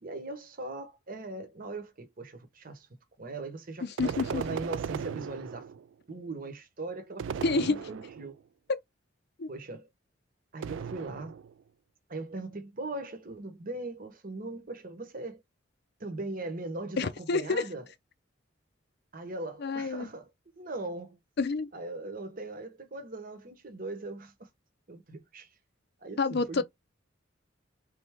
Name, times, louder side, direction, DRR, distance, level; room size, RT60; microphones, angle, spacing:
voice 1, 0.0-2.9 3.2-5.7 6.1-8.3 9.5-9.9 10.5-11.4 12.1-15.4 16.0-17.9 19.1-20.3 20.5-21.2 21.7-24.5 24.9-25.5 26.0-26.6, right 2 dB, 45° right, 1.0 m, -40 dB
voice 2, 3.8-4.4 7.4-7.8 8.7-8.8 9.4-9.5 17.0-17.6 19.6-20.1 21.4-21.7 26.2-26.6, left 4 dB, 55° left, 0.5 m, -28 dB
sound 1, 4.0-5.9 7.2-8.4 10.6-11.6, right 7 dB, 75° right, 0.3 m, -37 dB
3.9 x 3.3 x 3.5 m
head